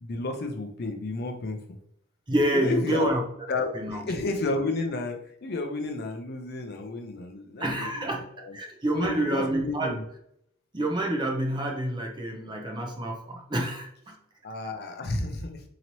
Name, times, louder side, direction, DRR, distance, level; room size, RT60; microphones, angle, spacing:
voice 1, 0.0-1.6 2.5-3.1 3.5-8.1 8.4-8.6 8.9-10.0 14.4-15.6, left 2 dB, 45° left, 4 dB, 0.5 m, -31 dB
voice 2, 2.3-3.2 3.7-4.0 7.6-8.2 8.5-10.0 10.7-14.1, right 1 dB, 20° right, 1 dB, 0.5 m, -28 dB
4.0 x 2.9 x 2.9 m, 0.73 s
head